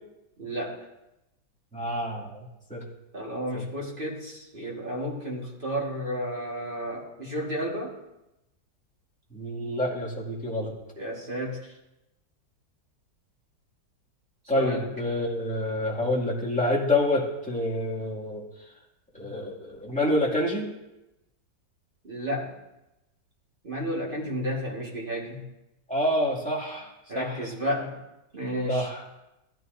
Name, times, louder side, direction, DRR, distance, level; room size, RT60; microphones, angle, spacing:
voice 1, 0.4-0.8 3.1-8.0 11.0-11.8 14.5-14.9 19.2-19.3 22.0-22.6 23.6-25.4 27.1-28.0 28.3-28.9, equal, 30° right, -2 dB, 1.7 m, -32 dB
voice 2, 1.7-2.8 3.5-3.6 9.3-10.7 14.5-18.4 19.1-20.7 25.9-27.3 28.7-29.0, left 1 dB, 5° left, -5 dB, 2.0 m, -27 dB
15.5 x 12.0 x 2.6 m, 0.94 s
omnidirectional pair, 1.9 m